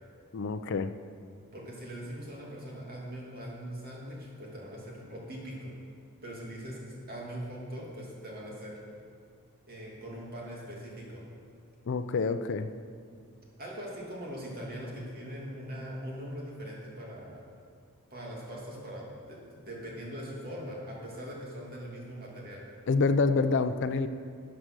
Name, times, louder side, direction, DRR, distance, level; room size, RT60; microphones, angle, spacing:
voice 1, 0.3-0.9 11.9-12.7 22.9-24.1, left 4 dB, 55° left, 10 dB, 0.5 m, -27 dB
voice 2, 1.5-5.7 6.2-8.8 9.7-11.2 13.6-17.4 18.1-22.6, equal, 45° right, -3 dB, 2.7 m, -41 dB
13.0 x 7.4 x 6.2 m, 2.3 s
head